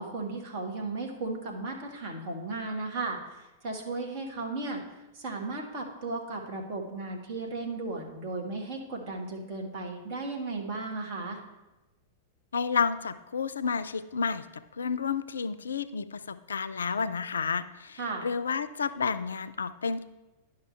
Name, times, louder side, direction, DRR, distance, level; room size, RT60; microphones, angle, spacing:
voice 1, 0.0-4.8 5.1-11.4 18.0-18.3, right 3 dB, 45° right, 1 dB, 1.6 m, -35 dB
voice 2, 12.5-14.4 14.8-20.0, left 5 dB, 70° left, 14 dB, 0.3 m, -31 dB
10.5 x 5.7 x 3.3 m, 1.1 s
figure-of-eight pair, 95°, 0 cm